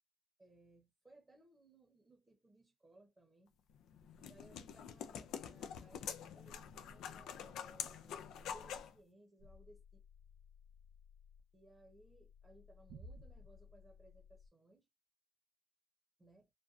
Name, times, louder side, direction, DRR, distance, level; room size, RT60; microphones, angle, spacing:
voice 1, 0.4-3.5 4.2-8.2 8.5-10.0 11.5-14.9 16.2-16.5, right 1 dB, 15° right, 0.8 m, -64 dB
sound 1, 3.7-8.9, left 8 dB, 85° left, 0.3 m, -46 dB
sound 2, 9.4-14.5, left 2 dB, 80° right, 0.5 m, -58 dB
2.5 x 2.2 x 2.4 m
cardioid pair, 90°, 0 cm